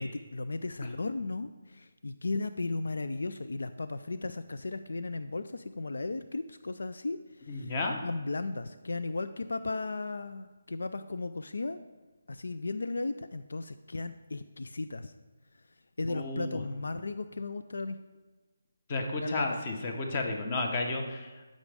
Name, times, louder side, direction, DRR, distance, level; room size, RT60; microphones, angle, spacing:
voice 1, 0.0-7.7 8.0-11.8 12.3-15.1 16.0-18.0 19.2-19.6, left 3 dB, 80° left, 11 dB, 0.4 m, -35 dB
voice 2, 7.5-8.0 16.0-16.6 18.9-21.3, left 2 dB, 30° left, 3 dB, 1.1 m, -32 dB
13.0 x 5.1 x 3.5 m, 1.2 s
hypercardioid pair, 165°, 0 cm